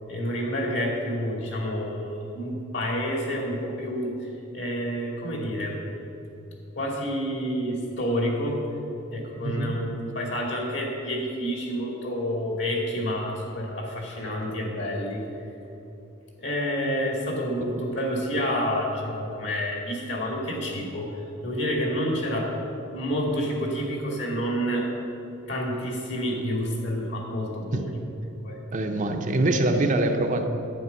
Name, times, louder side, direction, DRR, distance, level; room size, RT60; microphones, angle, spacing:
voice 1, 0.1-4.3 4.5-5.8 6.8-8.6 9.1-15.2 16.4-22.5 22.9-24.9 25.4-28.0 28.4-28.6, equal, 65° left, -1 dB, 2.5 m, -29 dB
voice 2, 9.4-9.8 17.6-17.8 27.7-28.1 28.7-30.5, right 2 dB, 40° right, 5 dB, 0.7 m, -25 dB
11.0 x 8.9 x 5.8 m, 2.8 s
head